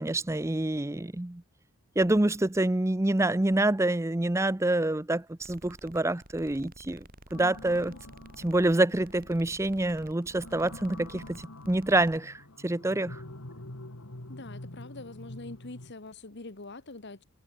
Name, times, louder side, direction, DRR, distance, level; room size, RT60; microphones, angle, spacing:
voice 1, 0.0-1.4 2.0-7.0 7.3-7.9 8.4-13.2, right 1 dB, 15° right, 0.6 m, -27 dB
sound 1, 5.4-12.2, right 1 dB, 40° right, 8.0 m, -52 dB
sound 2, 7.3-15.9, left 1 dB, 70° left, 2.6 m, -46 dB
voice 2, 14.3-17.2, left 2 dB, 50° left, 1.3 m, -44 dB
head